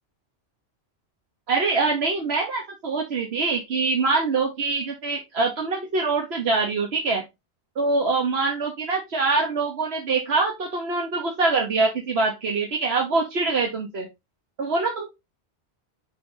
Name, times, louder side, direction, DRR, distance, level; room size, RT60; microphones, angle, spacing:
voice 1, 1.5-7.2 7.8-14.1 14.6-15.1, right 3 dB, 75° right, 1 dB, 1.4 m, -24 dB
5.6 x 5.0 x 3.9 m, 0.23 s
omnidirectional pair, 1.1 m